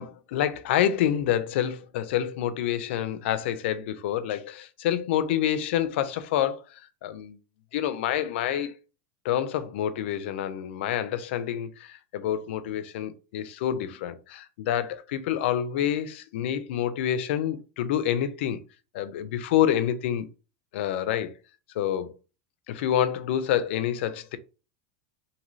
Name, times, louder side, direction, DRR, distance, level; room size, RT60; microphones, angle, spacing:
voice 1, 0.0-7.4 7.7-8.7 9.2-18.6 18.9-20.3 20.7-21.3 21.7-22.1 22.7-24.4, left 10 dB, 60° left, 0.4 m, -27 dB
2.6 x 2.6 x 3.0 m
supercardioid pair, 175°, 7 cm